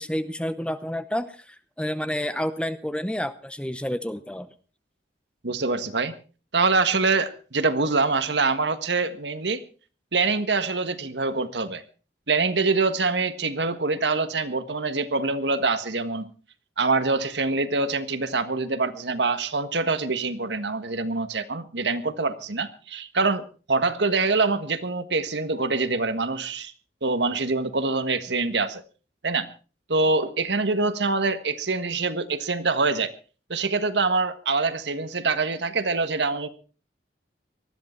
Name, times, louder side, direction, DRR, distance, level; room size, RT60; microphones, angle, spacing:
voice 1, 0.0-4.5, equal, 5° left, 12 dB, 0.7 m, -29 dB
voice 2, 5.4-6.2 6.5-9.6 10.1-11.8 12.3-16.3 16.8-26.7 27.0-28.8 29.2-29.5 29.9-33.1 33.5-36.5, right 3 dB, 80° right, 10 dB, 1.5 m, -25 dB
19.5 x 13.5 x 4.5 m, 0.37 s
head